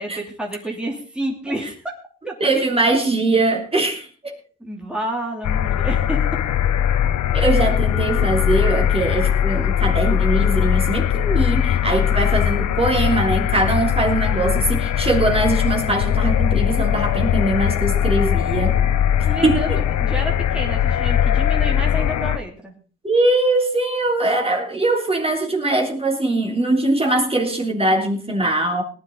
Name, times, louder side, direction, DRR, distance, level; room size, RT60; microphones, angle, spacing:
voice 1, 0.0-1.9 2.2-2.3 4.6-6.2 19.3-22.7, right 1 dB, 5° right, -1 dB, 3.1 m, -29 dB
voice 2, 2.4-4.4 7.3-18.8 19.4-19.8 23.0-28.8, right 2 dB, 20° right, 2 dB, 3.3 m, -21 dB
sound 1, 5.4-22.4, left 9 dB, 70° left, 0.9 m, -20 dB
19.0 x 10.0 x 3.9 m, 0.39 s
cardioid pair, 90°, 30 cm